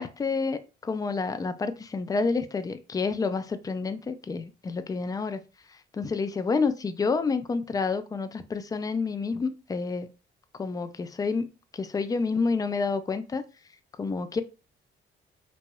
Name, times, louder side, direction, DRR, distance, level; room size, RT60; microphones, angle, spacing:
voice 1, 0.0-5.4 5.9-10.1 10.5-11.5 11.7-13.4 14.0-14.4, left 4 dB, 20° left, 0.3 m, -29 dB
3.0 x 2.6 x 2.3 m
cardioid pair, 90°, 20 cm